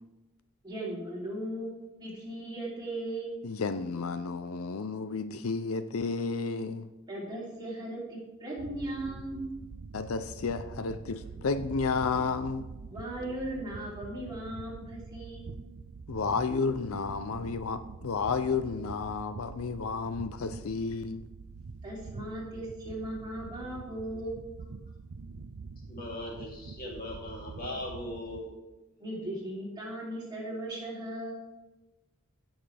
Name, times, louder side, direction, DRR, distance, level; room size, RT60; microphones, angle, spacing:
voice 1, 0.6-3.3 7.1-9.5 12.9-15.5 21.8-24.4 29.0-31.4, right 1 dB, 20° right, 3.1 m, -37 dB
voice 2, 3.4-6.9 9.9-12.6 16.1-21.2, left 4 dB, 75° left, 0.5 m, -32 dB
sound 1, 8.6-28.4, right 4 dB, 85° right, 0.6 m, -45 dB
voice 3, 25.9-28.5, left 1 dB, 40° left, 2.8 m, -39 dB
16.5 x 6.4 x 3.4 m
head